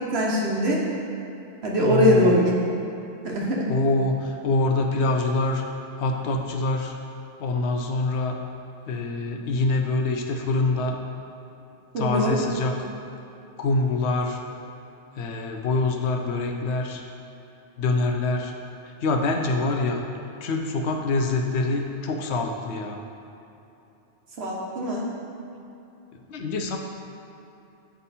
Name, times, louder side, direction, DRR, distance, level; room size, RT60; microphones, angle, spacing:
voice 1, 0.1-0.8 1.6-2.5 3.2-3.7 11.9-12.4 24.4-25.1, equal, 65° right, -3 dB, 1.3 m, -22 dB
voice 2, 1.8-2.4 3.7-5.6 6.0-7.0 7.4-8.4 8.9-11.0 12.0-12.7 13.6-14.4 15.2-17.0 17.8-18.5 19.0-20.1 20.4-23.0 26.3-26.8, left 2 dB, 75° left, 3 dB, 0.9 m, -25 dB
8.8 x 3.5 x 4.1 m, 2.9 s
omnidirectional pair, 1.2 m